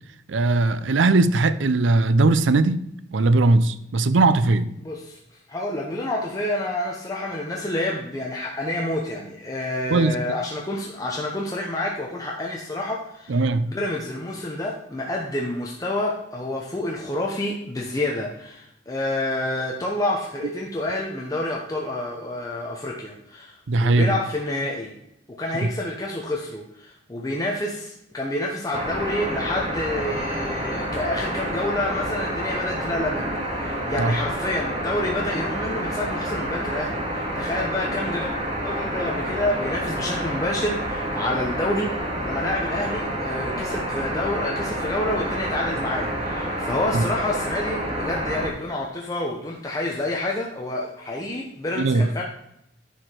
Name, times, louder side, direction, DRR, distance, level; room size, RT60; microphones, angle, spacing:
voice 1, 0.3-2.8 3.1-4.7 9.9-10.2 13.3-13.7 23.7-24.1 34.0-34.2 46.9-47.0 51.8-52.1, right 3 dB, 90° right, 0.5 m, -19 dB
voice 2, 4.8-5.2 5.5-24.9 25.4-38.3 38.6-52.2, left 1 dB, 20° left, 0.9 m, -28 dB
sound 1, 28.7-48.5, right 1 dB, 30° right, 1.9 m, -28 dB
10.0 x 4.9 x 4.5 m
head